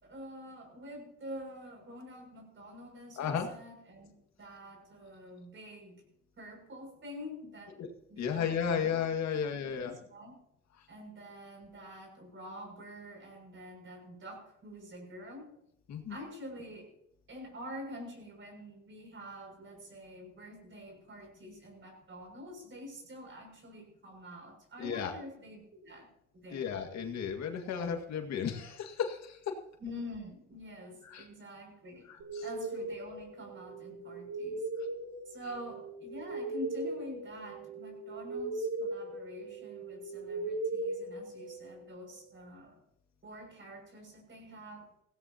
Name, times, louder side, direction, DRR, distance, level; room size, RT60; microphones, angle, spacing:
voice 1, 0.0-4.1 4.4-6.0 6.4-7.8 8.1-9.0 9.3-10.4 10.9-15.5 16.1-16.9 17.3-26.1 26.3-26.7 29.8-32.1 32.4-34.7 35.3-42.8 43.2-44.9, equal, 40° right, 2 dB, 6.6 m, -47 dB
voice 2, 3.2-3.5 7.8-7.9 8.2-9.9 10.8-10.9 15.9-16.2 24.8-25.1 26.5-29.6 31.0-31.3 32.1-32.5, left 7 dB, 60° left, 4 dB, 2.0 m, -34 dB
sound 1, 32.2-41.9, right 2 dB, 70° right, 5.7 m, -39 dB
17.5 x 17.0 x 2.9 m, 0.76 s
cardioid pair, 90°, 30 cm